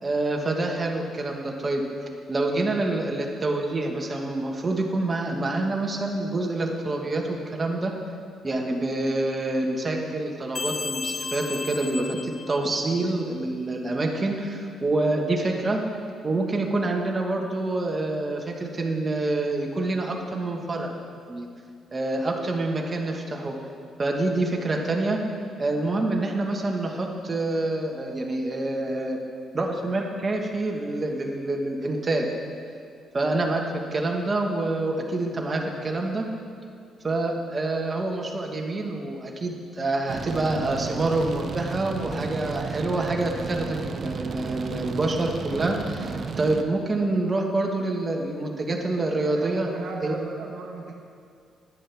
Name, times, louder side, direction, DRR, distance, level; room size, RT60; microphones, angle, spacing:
voice 1, 0.0-1.8 2.3-7.9 8.4-15.8 16.2-20.9 21.3-21.5 21.9-23.5 24.0-25.2 25.6-29.2 29.5-32.3 33.1-33.6 33.9-36.2 37.0-49.7 50.0-50.1, right 2 dB, 30° right, 1 dB, 1.5 m, -27 dB
sound 1, 10.5-13.1, left 5 dB, 45° left, 0.4 m, -34 dB
sound 2, 40.1-46.6, right 5 dB, 50° right, 0.6 m, -33 dB
voice 2, 49.2-50.9, right 4 dB, 70° right, 1 dB, 1.2 m, -37 dB
22.0 x 7.7 x 3.5 m, 2.3 s
cardioid pair, 90°, 0 cm